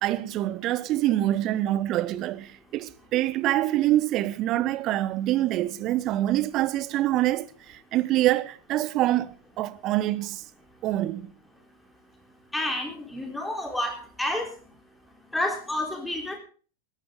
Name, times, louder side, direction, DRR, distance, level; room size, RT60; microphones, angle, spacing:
voice 1, 0.0-10.4 10.8-11.3, right 14 dB, 35° right, 0.9 m, -25 dB
voice 2, 12.5-14.5 15.3-16.4, left 1 dB, 5° left, 3.5 m, -29 dB
20.0 x 11.5 x 3.7 m
figure-of-eight pair, 90°, 0 cm